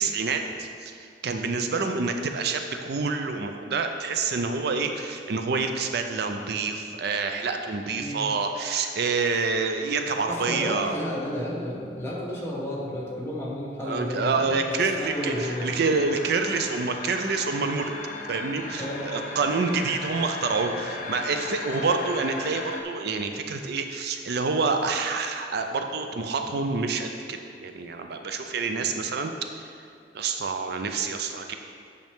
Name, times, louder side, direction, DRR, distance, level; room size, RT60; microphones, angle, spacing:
voice 1, 0.0-11.0 13.8-17.9 18.3-29.3 29.6-29.7 30.1-31.5, right 4 dB, 65° right, 5 dB, 0.5 m, -27 dB
voice 2, 7.9-8.3 10.3-15.9 18.8-19.4, equal, 15° left, -6 dB, 1.5 m, -32 dB
sound 1, 15.0-22.8, left 3 dB, 50° left, 0.7 m, -37 dB
8.9 x 5.7 x 3.6 m, 2.3 s
head